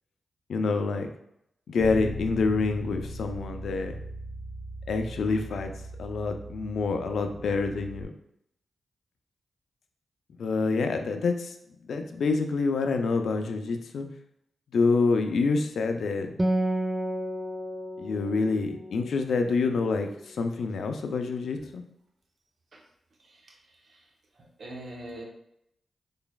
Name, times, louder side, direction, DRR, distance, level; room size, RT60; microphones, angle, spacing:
voice 1, 0.5-1.1 1.7-4.0 4.9-5.7 6.0-8.1 10.4-11.5 11.9-14.1 14.7-16.3 18.0-21.8, left 4 dB, 80° left, 6 dB, 0.4 m, -27 dB
Bass guitar, 1.8-8.0, equal, 35° left, 0.9 m, -39 dB
Acoustic guitar, 16.4-20.1, right 1 dB, 20° right, 0.3 m, -31 dB
voice 2, 23.2-24.1 24.4-25.2, right 1 dB, 65° right, 0 dB, 0.8 m, -44 dB
3.9 x 3.3 x 2.3 m, 0.78 s
cardioid pair, 60°, 0 cm